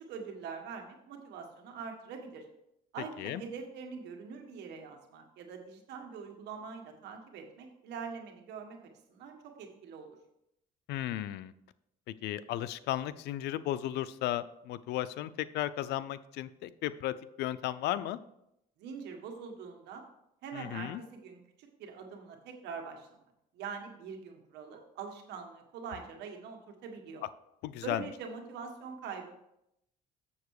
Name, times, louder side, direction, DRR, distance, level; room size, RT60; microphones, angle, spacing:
voice 1, 0.1-2.4 2.9-8.8 9.1-10.2 18.8-20.0 20.4-23.1 23.5-27.2 27.8-29.3, right 5 dB, 80° right, 3 dB, 1.6 m, -44 dB
voice 2, 10.9-11.5 12.2-18.2 20.5-21.0 27.6-28.0, left 13 dB, 80° left, 15 dB, 0.5 m, -35 dB
7.2 x 6.8 x 4.8 m, 0.81 s
cardioid pair, 110°, 17 cm